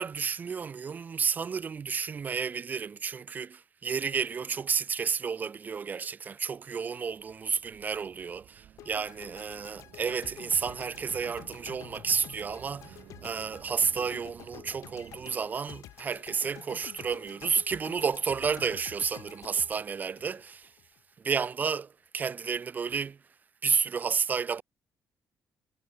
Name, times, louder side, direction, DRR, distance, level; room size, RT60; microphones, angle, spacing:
voice 1, 0.0-20.7 21.2-23.2 23.6-24.6, right 6 dB, 35° right, 0.5 m, -31 dB
sound 1, 7.0-15.4, right 11 dB, 65° right, 2.5 m, -53 dB
sound 2, 8.8-21.0, left 13 dB, 80° left, 4.0 m, -49 dB
cardioid pair, 115°, 5 cm